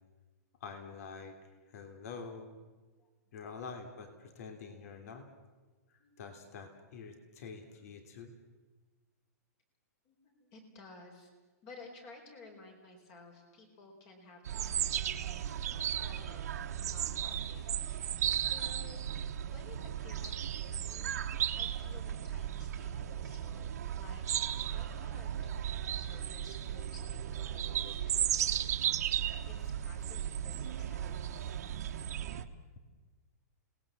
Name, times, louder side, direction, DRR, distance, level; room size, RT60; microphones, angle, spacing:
voice 1, 0.6-1.4 1.7-2.6 3.3-5.3 5.9-8.3, left 5 dB, 60° left, 6 dB, 3.1 m, -46 dB
voice 2, 10.0-11.3 11.6-21.2 21.5-24.2 24.7-31.6, left 3 dB, 35° left, 3 dB, 4.4 m, -55 dB
sound 1, 14.5-32.4, right 10 dB, 65° right, 1.5 m, -35 dB
29.5 x 19.0 x 7.6 m, 1.3 s
hypercardioid pair, 160°, 9 cm